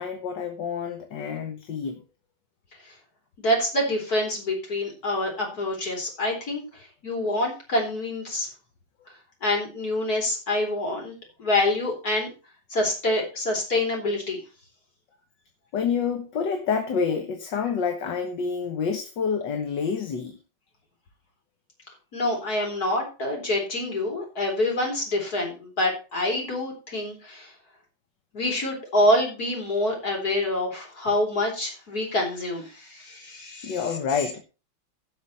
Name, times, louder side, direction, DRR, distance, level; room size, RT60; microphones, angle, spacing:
voice 1, 0.0-2.0 15.7-20.4 33.6-34.4, left 6 dB, 65° left, 1.9 m, -28 dB
voice 2, 3.4-8.5 9.4-11.1 11.4-12.3 12.7-14.4 22.1-27.5 28.3-33.8, left 1 dB, 50° left, 4.5 m, -26 dB
17.0 x 5.9 x 4.2 m
omnidirectional pair, 2.1 m